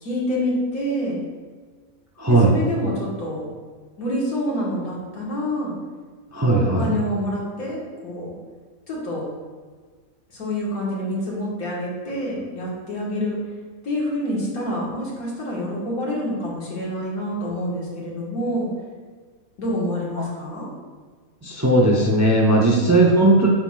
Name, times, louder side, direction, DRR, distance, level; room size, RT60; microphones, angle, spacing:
voice 1, 0.0-1.2 2.3-3.5 4.0-5.7 6.5-8.3 8.9-9.3 10.3-13.4 13.8-18.7 19.6-20.7 22.6-22.9, equal, 80° left, -5 dB, 2.1 m, -27 dB
voice 2, 2.2-2.5 6.3-6.9 21.4-23.5, right 2 dB, 20° right, -2 dB, 0.4 m, -17 dB
7.9 x 6.1 x 2.4 m, 1.5 s
omnidirectional pair, 1.5 m